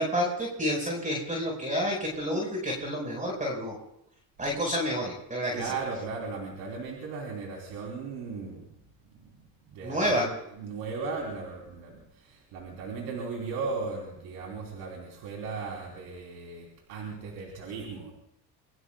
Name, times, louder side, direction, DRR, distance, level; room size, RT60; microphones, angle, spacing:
voice 1, 0.0-3.8 4.4-5.7 9.8-10.3, equal, 20° right, -1 dB, 4.9 m, -29 dB
voice 2, 5.5-8.6 9.0-18.1, right 4 dB, 85° right, -1 dB, 3.4 m, -37 dB
25.0 x 22.5 x 2.3 m, 0.77 s
supercardioid pair, 90°, 36 cm